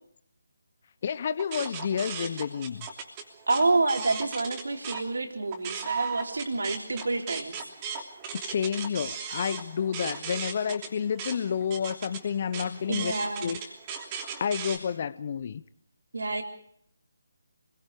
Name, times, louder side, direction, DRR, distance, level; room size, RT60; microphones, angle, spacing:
voice 1, 1.0-2.9 8.4-13.1 13.4-13.6 14.4-15.6, left 7 dB, 35° left, 17 dB, 0.8 m, -30 dB
sound 1, 1.4-5.0 5.4-14.8, right 6 dB, 20° right, 3.1 m, -37 dB
voice 2, 3.5-7.6 12.9-13.5 16.1-16.4, right 3 dB, 65° right, 5 dB, 3.8 m, -28 dB
27.5 x 22.0 x 4.9 m, 0.67 s
figure-of-eight pair, 150°, 0 cm